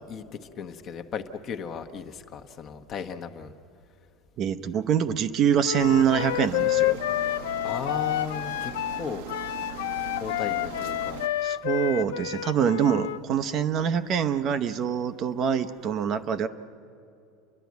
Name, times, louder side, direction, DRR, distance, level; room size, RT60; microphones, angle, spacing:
voice 1, 0.1-3.5 7.6-9.3 10.1-11.2, left 6 dB, 35° left, 6 dB, 1.0 m, -36 dB
voice 2, 4.4-7.0 11.4-16.5, right 8 dB, 35° right, 11 dB, 0.7 m, -25 dB
Wind instrument woodwind instrument, 5.6-13.2, left 14 dB, 90° left, 0.4 m, -29 dB
sound 1, 5.8-11.3, right 9 dB, 75° right, 1.1 m, -40 dB
29.0 x 11.5 x 9.4 m, 2.6 s
supercardioid pair, 150°, 0 cm